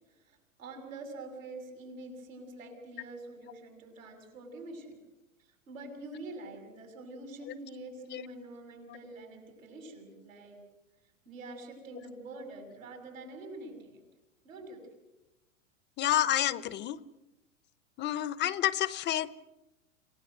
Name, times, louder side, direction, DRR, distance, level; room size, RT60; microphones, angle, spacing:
voice 1, 0.2-5.0 5.4-10.6 11.3-14.0 14.4-14.8, right 2 dB, 85° right, 4 dB, 7.2 m, -46 dB
voice 2, 16.0-17.0 18.0-19.3, left 12 dB, 30° left, 18 dB, 0.7 m, -29 dB
27.5 x 16.5 x 7.9 m, 0.98 s
hypercardioid pair, 115°, 39 cm